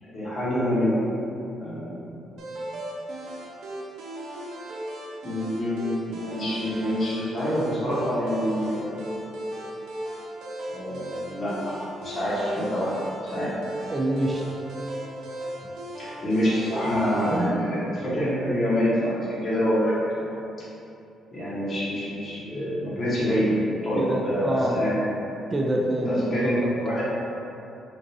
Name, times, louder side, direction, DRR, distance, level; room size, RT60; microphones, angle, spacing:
voice 1, 0.0-1.0 1.6-2.0 5.2-9.4 10.7-11.7 12.0-12.9 13.2-13.5 16.0-20.3 21.3-23.5 23.8-25.2 26.0-27.0, equal, 45° left, -9 dB, 1.1 m, -26 dB
sound 1, 2.4-17.4, right 1 dB, 80° right, 0.6 m, -37 dB
voice 2, 13.9-14.4 17.3-17.6 24.0-24.8 25.5-26.6, right 1 dB, 25° right, -3 dB, 0.4 m, -26 dB
3.5 x 2.6 x 2.7 m, 2.7 s
cardioid pair, 90°, 0 cm